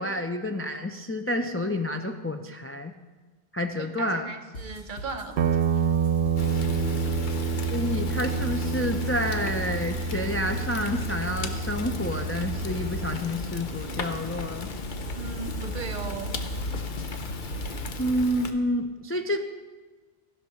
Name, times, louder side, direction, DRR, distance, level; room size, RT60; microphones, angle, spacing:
voice 1, 0.0-2.9 3.5-4.3 7.7-14.7 18.0-19.4, left 1 dB, 20° left, 4 dB, 0.3 m, -29 dB
voice 2, 3.8-5.6 15.1-16.3, right 4 dB, 50° right, 8 dB, 0.9 m, -37 dB
sound 1, 4.5-18.1, equal, 80° left, 1.6 m, -38 dB
Guitar, 5.4-13.2, right 5 dB, 80° right, 0.9 m, -28 dB
Fire, 6.4-18.5, left 3 dB, 50° left, 0.9 m, -36 dB
15.5 x 5.9 x 5.8 m, 1.3 s
omnidirectional pair, 1.1 m